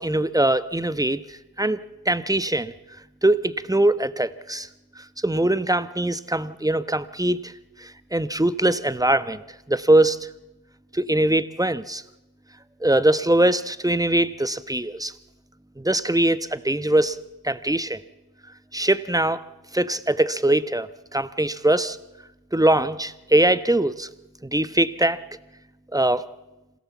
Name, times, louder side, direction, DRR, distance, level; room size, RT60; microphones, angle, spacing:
voice 1, 0.0-2.7 3.2-4.7 5.0-7.5 7.8-9.4 9.7-10.3 10.9-12.0 12.8-15.1 15.8-18.0 18.7-19.4 19.7-22.0 22.5-24.1 24.4-25.2 25.9-26.2, right 1 dB, 10° right, 14 dB, 1.1 m, -22 dB
26.5 x 17.0 x 7.3 m, 1.0 s
cardioid pair, 40°, 43 cm